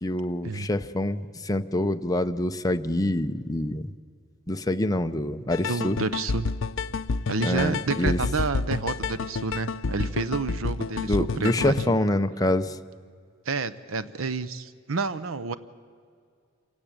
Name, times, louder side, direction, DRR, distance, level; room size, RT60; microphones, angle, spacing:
voice 1, 0.0-3.8 4.5-6.0 7.4-8.2 11.1-12.7, left 1 dB, 20° left, 8 dB, 0.7 m, -26 dB
sound 1, 5.5-11.9, left 4 dB, 70° left, 0.6 m, -29 dB
voice 2, 5.6-6.5 7.3-12.0 13.5-15.5, right 4 dB, 85° right, 13 dB, 0.8 m, -29 dB
27.0 x 17.0 x 8.9 m, 2.2 s
head